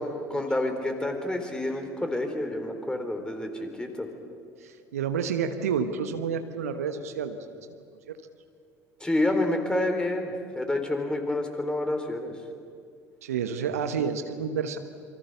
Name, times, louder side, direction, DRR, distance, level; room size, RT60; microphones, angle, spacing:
voice 1, 0.0-4.1 9.0-12.3, left 1 dB, 10° left, 5 dB, 4.2 m, -28 dB
voice 2, 4.6-7.6 8.1-8.2 13.2-14.8, right 6 dB, 75° right, 9 dB, 1.2 m, -29 dB
27.5 x 24.5 x 6.8 m, 2.2 s
figure-of-eight pair, 60°, 8 cm